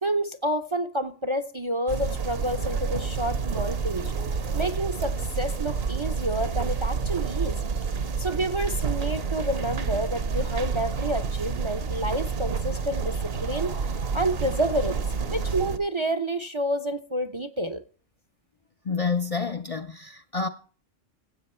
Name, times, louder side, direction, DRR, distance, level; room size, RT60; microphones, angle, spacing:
voice 1, 0.0-4.1 4.5-7.6 8.2-13.7 14.1-15.0 15.3-17.8, right 1 dB, 30° right, 0.6 m, -29 dB
sound 1, 1.9-15.8, right 5 dB, 60° right, 1.1 m, -29 dB
voice 2, 18.8-20.5, left 5 dB, 40° left, 0.5 m, -29 dB
15.5 x 7.9 x 4.3 m
omnidirectional pair, 1.2 m